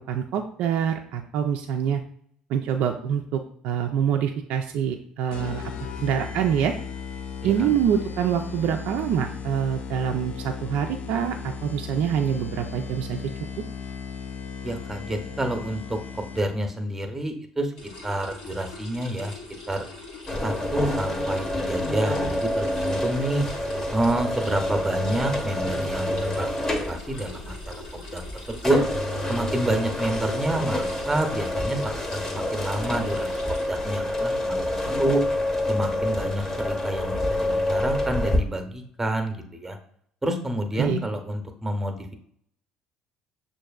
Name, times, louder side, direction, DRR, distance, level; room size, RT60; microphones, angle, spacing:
voice 1, 0.0-2.0 2.5-5.7 6.0-6.7 7.4-13.2 40.8-41.0, right 8 dB, 65° right, 4 dB, 0.3 m, -25 dB
sound 1, 5.3-16.7, left 6 dB, 60° left, 0.4 m, -36 dB
voice 2, 14.6-17.7 18.0-19.3 19.7-19.9 20.4-23.5 23.9-26.5 26.9-27.7 28.1-28.8 29.3-33.4 33.6-35.2 35.7-39.8 40.2-42.0, right 1 dB, 15° right, 5 dB, 0.8 m, -28 dB
sound 2, 17.8-33.7, left 3 dB, 85° left, 1.1 m, -42 dB
sound 3, 20.3-38.4, left 1 dB, 20° left, 0.8 m, -27 dB
6.4 x 2.6 x 2.3 m, 0.64 s
hypercardioid pair, 70°, 2 cm